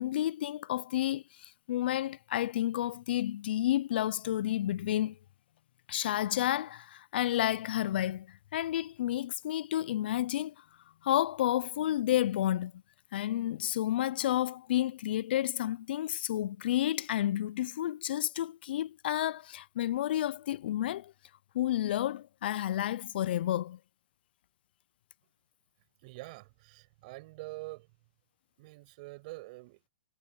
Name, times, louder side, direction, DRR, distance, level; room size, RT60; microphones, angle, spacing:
voice 1, 0.0-5.2 5.9-10.5 11.0-12.7 13.1-21.1 21.5-23.8, left 13 dB, 55° left, 0.4 m, -31 dB
voice 2, 26.0-27.9 28.6-29.9, right 22 dB, 40° right, 5.5 m, -45 dB
hypercardioid pair, 165°, 7 cm